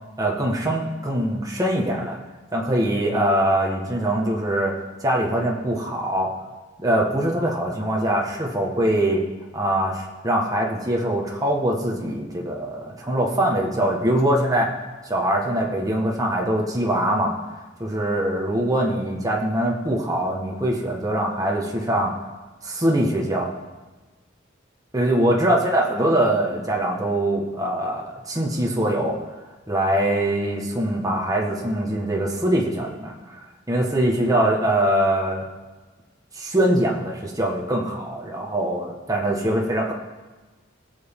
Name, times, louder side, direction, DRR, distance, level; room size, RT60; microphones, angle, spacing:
voice 1, 0.2-2.2 2.5-4.7 5.0-6.3 6.8-9.2 9.5-14.7 15.0-17.3 17.8-22.1 22.6-23.5 24.9-29.2 29.7-35.4 36.3-39.9, right 1 dB, 20° right, -1 dB, 1.5 m, -23 dB
20.5 x 7.1 x 3.8 m, 1.2 s
head